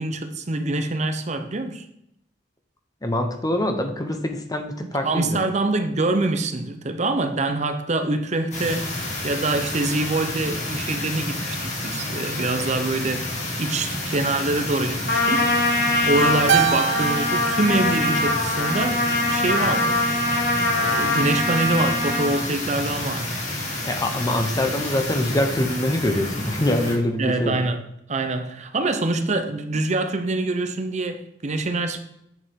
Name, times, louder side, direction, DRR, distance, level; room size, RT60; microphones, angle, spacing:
voice 1, 0.0-1.9 4.9-9.0 9.2-15.5 16.1-20.0 20.8-23.4 27.2-27.8 28.1-32.0, right 2 dB, 40° right, 0.7 m, -25 dB
voice 2, 3.0-5.4 23.8-27.6, left 1 dB, 20° left, 0.9 m, -24 dB
sound 1, 8.5-26.9, left 1 dB, 40° left, 2.3 m, -30 dB
Trumpet, 15.1-22.4, left 2 dB, 60° left, 1.9 m, -23 dB
Keyboard (musical), 16.5-19.0, right 10 dB, 80° right, 0.4 m, -26 dB
8.0 x 6.9 x 3.6 m
head